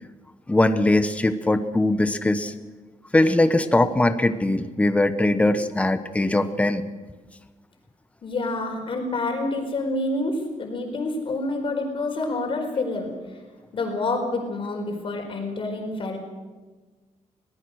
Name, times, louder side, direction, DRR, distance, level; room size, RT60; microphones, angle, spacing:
voice 1, 0.5-2.5 3.1-6.8, left 2 dB, 10° left, 10 dB, 1.0 m, -21 dB
voice 2, 8.2-13.1 13.7-16.2, left 2 dB, 45° left, 3 dB, 4.6 m, -27 dB
22.5 x 18.5 x 6.5 m, 1.3 s
wide cardioid pair, 160°, 13 cm